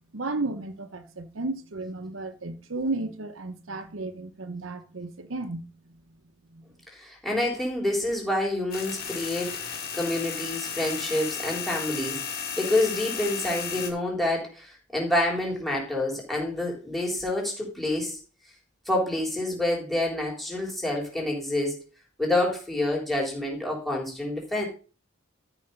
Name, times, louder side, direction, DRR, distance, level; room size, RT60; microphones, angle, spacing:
voice 1, 0.1-5.7 6.5-6.6, right 2 dB, 80° right, 0.9 m, -33 dB
voice 2, 6.9-18.2 18.9-21.8 22.2-24.7, left 1 dB, ahead, 3.5 m, -28 dB
sound 1, 8.7-13.9, left 7 dB, 50° left, 2.3 m, -34 dB
13.0 x 5.0 x 5.4 m
head